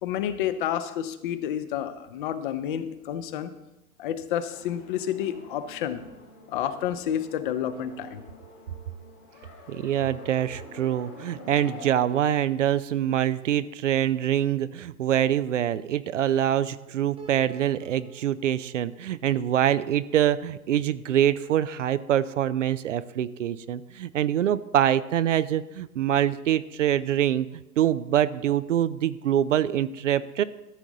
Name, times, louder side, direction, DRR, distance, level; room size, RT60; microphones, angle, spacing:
voice 1, 0.0-3.5 4.0-6.0 6.5-8.2, left 10 dB, 35° left, 12 dB, 0.8 m, -30 dB
sound 1, 4.5-11.9, left 3 dB, 10° left, 0.4 m, -47 dB
voice 2, 9.7-27.5 27.8-30.4, right 11 dB, 55° right, 15 dB, 0.5 m, -25 dB
Piano, 17.2-20.4, right 5 dB, 10° right, 1.1 m, -51 dB
13.5 x 7.1 x 3.9 m, 0.96 s
figure-of-eight pair, 120°, 46 cm